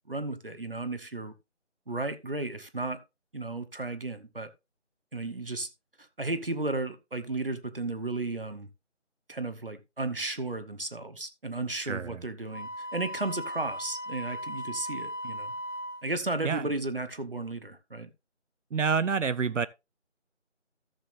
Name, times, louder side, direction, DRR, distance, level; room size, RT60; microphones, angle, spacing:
voice 1, 0.1-1.3 1.9-3.0 3.3-4.5 5.1-5.7 6.0-8.7 9.3-15.5 16.0-18.1, right 2 dB, 50° right, 1.1 m, -34 dB
Wind instrument woodwind instrument, 12.5-16.1, equal, 65° right, 2.1 m, -37 dB
voice 2, 18.7-19.7, right 5 dB, 80° right, 0.6 m, -27 dB
14.0 x 7.0 x 2.5 m
figure-of-eight pair, 170°, 36 cm